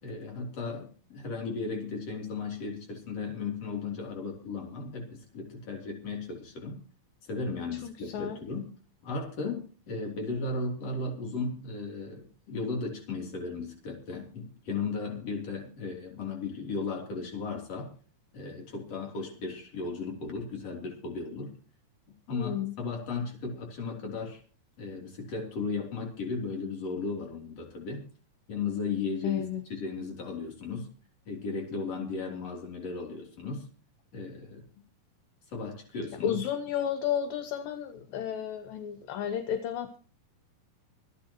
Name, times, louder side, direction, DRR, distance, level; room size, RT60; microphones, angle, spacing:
voice 1, 0.0-6.8 7.2-8.7 9.0-17.9 18.3-21.5 22.3-24.4 24.8-28.0 28.5-30.9 31.3-33.7 34.1-34.6 35.5-36.4, left 4 dB, 45° left, 1 dB, 4.1 m, -35 dB
voice 2, 7.7-8.4 22.3-22.7 29.2-29.6 36.2-40.0, left 9 dB, 75° left, 8 dB, 2.6 m, -32 dB
26.5 x 10.5 x 3.0 m, 0.38 s
omnidirectional pair, 4.2 m